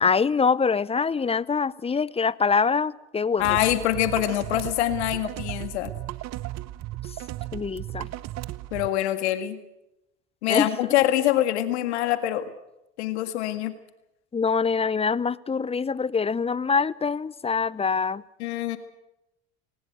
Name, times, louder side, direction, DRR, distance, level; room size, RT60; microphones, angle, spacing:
voice 1, 0.0-3.4 7.5-8.1 10.5-10.7 14.3-18.2, left 5 dB, 20° left, 21 dB, 0.7 m, -24 dB
voice 2, 3.4-5.9 8.7-9.6 10.4-12.5 13.0-13.7 18.4-18.8, left 13 dB, 85° left, 10 dB, 1.9 m, -24 dB
sound 1, 3.4-8.9, right 16 dB, 55° right, 0.9 m, -35 dB
19.5 x 19.5 x 8.0 m, 0.90 s
hypercardioid pair, 75°, 33 cm